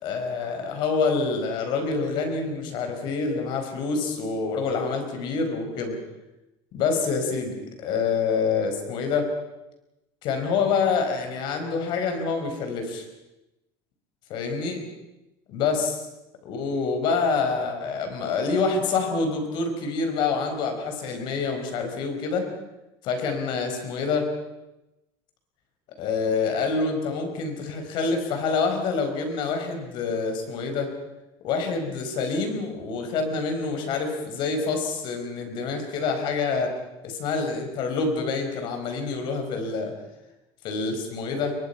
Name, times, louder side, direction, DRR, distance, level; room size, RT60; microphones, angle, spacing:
voice 1, 0.0-6.0 6.7-9.3 10.2-13.0 14.3-14.8 15.5-16.0 16.4-22.5 23.0-24.3 26.0-30.9 31.4-36.7 37.0-39.9 40.6-41.5, left 4 dB, 45° left, 5 dB, 4.9 m, -26 dB
29.0 x 23.5 x 5.7 m, 0.95 s
cardioid pair, 180°, 11 cm